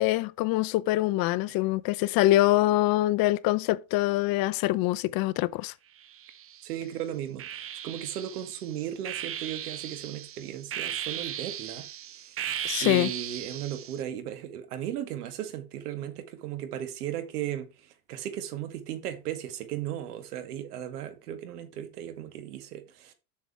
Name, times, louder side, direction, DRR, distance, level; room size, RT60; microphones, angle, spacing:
voice 1, 0.0-5.7 12.6-13.1, left 16 dB, 50° left, 0.7 m, -24 dB
sound 1, 6.0-6.8 7.4-14.0, right 10 dB, 30° right, 0.8 m, -37 dB
voice 2, 6.6-11.9 12.2-12.4 12.8-23.1, right 11 dB, 85° right, 2.1 m, -36 dB
7.4 x 6.6 x 4.7 m
supercardioid pair, 105°, 45 cm